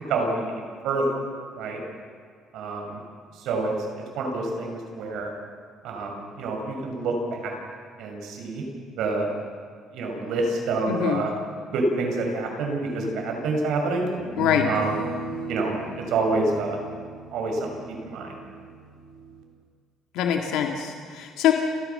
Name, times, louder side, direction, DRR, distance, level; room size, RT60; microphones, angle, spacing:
voice 1, 0.1-1.0 1.5-1.8 2.5-3.0 3.3-3.7 4.2-5.3 5.8-7.6 8.0-8.6 9.0-9.3 9.9-11.3 11.7-14.1 14.6-14.9 15.2-15.7 16.1-16.8 17.3-17.7 18.0-18.3, right 3 dB, 70° right, 2 dB, 5.6 m, -27 dB
voice 2, 10.9-11.2 14.4-14.7 20.1-21.5, left 10 dB, 80° left, 3 dB, 2.0 m, -23 dB
sound 1, 14.2-19.4, right 4 dB, 85° right, 3.1 m, -37 dB
29.5 x 14.5 x 6.8 m, 2.1 s
cardioid pair, 150°, 0 cm